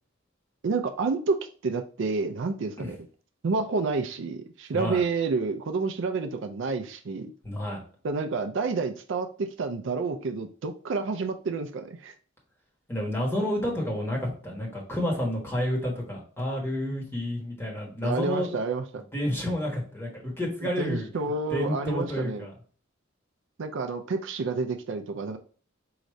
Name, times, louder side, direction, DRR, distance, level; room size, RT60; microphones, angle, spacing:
voice 1, 0.6-3.0 3.4-7.3 8.0-12.1 18.0-19.0 20.8-22.5 23.6-25.4, right 4 dB, 60° right, 7 dB, 0.4 m, -29 dB
voice 2, 7.4-7.8 12.9-18.5 19.1-21.1 21.5-22.5, left 1 dB, 10° left, -2 dB, 1.2 m, -30 dB
4.8 x 2.6 x 3.1 m, 0.42 s
head